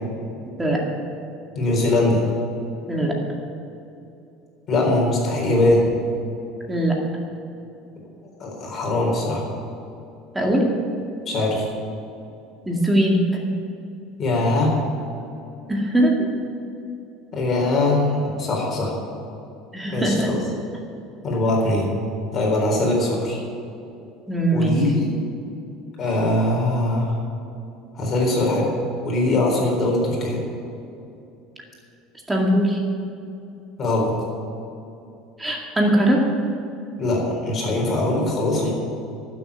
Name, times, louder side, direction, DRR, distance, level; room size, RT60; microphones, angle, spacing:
voice 1, 1.5-2.2 4.7-5.9 8.4-9.5 11.3-11.7 14.2-14.8 17.3-18.9 19.9-20.4 21.2-21.9 22.3-23.4 24.5-25.1 26.0-27.2 27.9-28.7 29.0-30.4 33.8-34.1 37.0-38.7, left 2 dB, 30° left, -2 dB, 4.1 m, -21 dB
voice 2, 12.7-13.2 15.7-16.1 19.7-20.3 24.3-24.8 32.3-32.8 35.4-36.2, right 1 dB, 10° right, -1 dB, 2.2 m, -20 dB
12.5 x 7.8 x 9.8 m, 2.8 s
cardioid pair, 160°, 0 cm